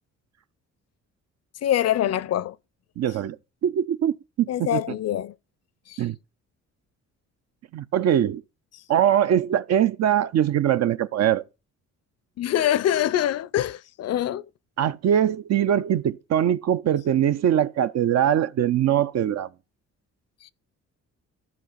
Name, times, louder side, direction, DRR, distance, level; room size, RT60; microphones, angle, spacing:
voice 1, 1.6-2.6 4.5-5.3 5.9-6.0 12.4-14.5 20.4-20.5, left 11 dB, 55° left, 0.6 m, -24 dB
voice 2, 3.0-3.4 3.6-5.0 6.0-6.2 7.7-8.4 8.9-11.4 14.8-19.5, right 10 dB, 60° right, 0.6 m, -22 dB
14.5 x 5.8 x 4.0 m
cardioid pair, 90°, 30 cm